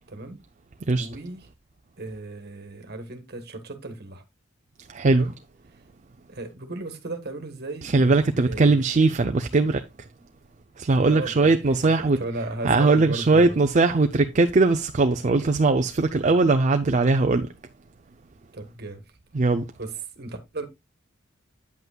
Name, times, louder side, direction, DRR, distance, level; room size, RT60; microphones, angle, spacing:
voice 1, 0.1-0.4 1.0-1.5 2.0-4.2 5.0-5.3 5.7-5.8 6.3-8.8 11.1-13.6 18.5-19.2 19.8-20.7, right 2 dB, 50° right, 1.5 m, -36 dB
voice 2, 4.9-5.2 7.8-9.8 10.8-12.2 12.6-17.5 19.3-19.6, right 3 dB, 35° right, 0.5 m, -20 dB
9.4 x 8.0 x 2.3 m
head